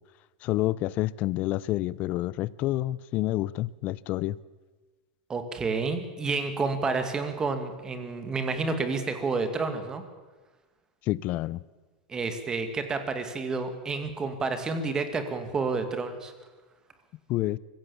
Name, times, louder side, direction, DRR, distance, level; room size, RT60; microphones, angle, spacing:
voice 1, 0.4-4.4 11.1-11.6 17.3-17.6, left 16 dB, 40° left, 0.6 m, -28 dB
voice 2, 5.3-10.0 12.1-16.3, right 4 dB, 15° right, 2.2 m, -30 dB
24.5 x 16.0 x 7.1 m
supercardioid pair, 150°, 4 cm